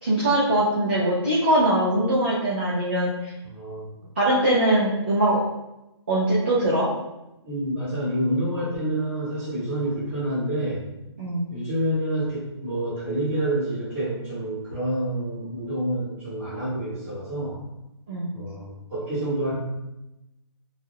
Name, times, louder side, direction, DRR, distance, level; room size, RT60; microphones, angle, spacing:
voice 1, 0.0-3.3 4.2-5.4 6.1-6.9 11.2-11.5 18.1-18.3, right 1 dB, 25° right, -7 dB, 0.3 m, -22 dB
voice 2, 3.4-3.9 7.4-10.9 11.5-17.6 18.3-19.5, right 1 dB, 5° right, -14 dB, 0.8 m, -28 dB
2.3 x 2.1 x 3.2 m, 0.94 s
hypercardioid pair, 175°, 15 cm